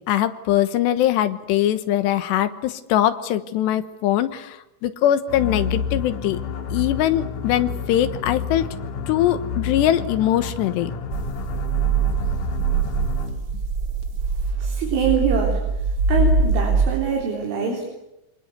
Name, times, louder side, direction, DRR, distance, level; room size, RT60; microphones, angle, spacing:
voice 1, 0.1-6.4 6.7-8.7 9.1-10.9, left 12 dB, 70° left, 11 dB, 3.1 m, -22 dB
sound 1, 5.3-13.5, left 6 dB, 50° left, 3.1 m, -30 dB
sound 2, 11.1-16.9, right 4 dB, 55° right, 1.7 m, -22 dB
voice 2, 14.6-15.6 16.1-17.8, right 6 dB, 80° right, 0 dB, 6.3 m, -24 dB
27.0 x 24.5 x 8.2 m, 0.88 s
omnidirectional pair, 5.5 m